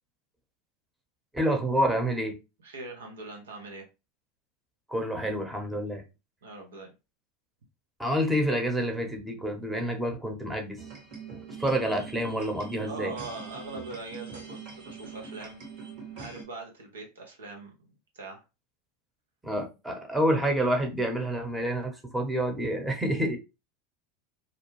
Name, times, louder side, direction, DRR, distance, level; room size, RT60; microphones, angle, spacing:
voice 1, 1.3-2.4 4.9-6.0 8.0-10.8 11.6-13.1 19.4-23.4, right 1 dB, 10° right, 0.9 m, -28 dB
voice 2, 2.6-3.9 6.4-6.9 12.8-15.6 16.1-17.7 18.1-18.4, right 3 dB, 80° right, 0.9 m, -41 dB
sound 1, 10.8-16.4, right 5 dB, 60° right, 1.6 m, -43 dB
2.6 x 2.2 x 3.1 m
hypercardioid pair, 85°, 0 cm